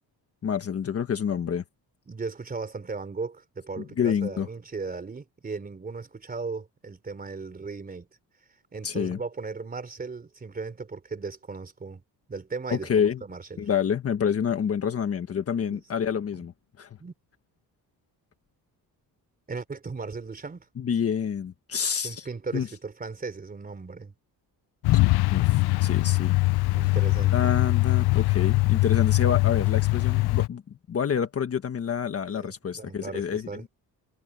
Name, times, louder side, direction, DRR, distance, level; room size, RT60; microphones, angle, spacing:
voice 1, 0.4-1.6 3.8-4.5 8.8-9.2 12.7-13.2 13.6-16.5 16.8-16.9 20.8-22.2 22.5-22.7 25.3-26.4 27.3-30.6 30.9-33.7, left 7 dB, 40° left, 1.4 m, -28 dB
voice 2, 2.1-8.1 8.7-12.0 12.3-13.7 15.7-15.8 16.3-16.4 17.0-17.1 19.5-20.7 22.0-24.1 26.7-27.6 32.3-33.6, right 4 dB, 25° right, 3.8 m, -37 dB
Truck, 24.8-30.5, left 23 dB, 85° left, 0.5 m, -22 dB
cardioid pair, 155°, 37 cm